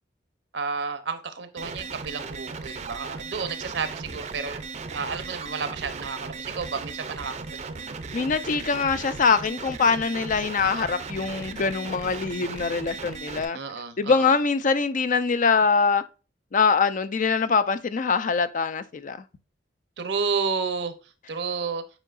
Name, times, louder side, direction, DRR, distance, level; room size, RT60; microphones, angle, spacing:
voice 1, 0.5-4.6 4.9-8.0 10.6-10.9 13.5-14.3 20.0-20.9 21.3-21.8, right 5 dB, 70° right, 0.8 m, -31 dB
sound 1, 1.6-13.4, right 4 dB, 40° right, 0.5 m, -37 dB
voice 2, 8.1-13.6 14.0-16.0 16.5-19.2, left 5 dB, 45° left, 0.5 m, -23 dB
8.1 x 4.7 x 2.5 m
head